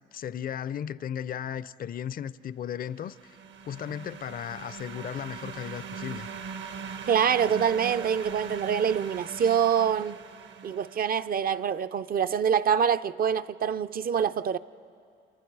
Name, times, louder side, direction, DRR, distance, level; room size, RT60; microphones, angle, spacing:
voice 1, 0.1-3.3 3.6-6.3, left 9 dB, 45° left, 0.5 m, -35 dB
sound 1, 2.9-11.5, right 6 dB, 65° right, 1.0 m, -41 dB
voice 2, 7.1-10.2 10.6-14.6, right 8 dB, 45° right, 0.5 m, -25 dB
29.5 x 27.0 x 4.7 m
cardioid pair, 90°, 20 cm